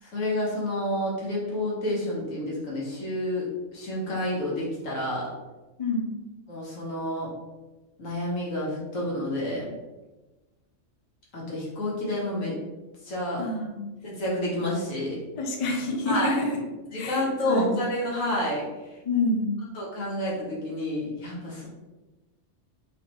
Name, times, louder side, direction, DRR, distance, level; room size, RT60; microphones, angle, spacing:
voice 1, 0.0-5.3 6.5-7.3 8.0-9.7 11.3-12.6 13.0-13.4 14.0-15.2 16.1-16.4 16.9-18.7 19.7-21.7, left 1 dB, 80° left, -5 dB, 1.7 m, -29 dB
voice 2, 13.4-13.9 15.4-16.6 17.0-17.9 19.0-19.5, left 2 dB, 35° left, 1 dB, 0.5 m, -27 dB
4.1 x 3.2 x 3.1 m, 1.1 s
omnidirectional pair, 1.3 m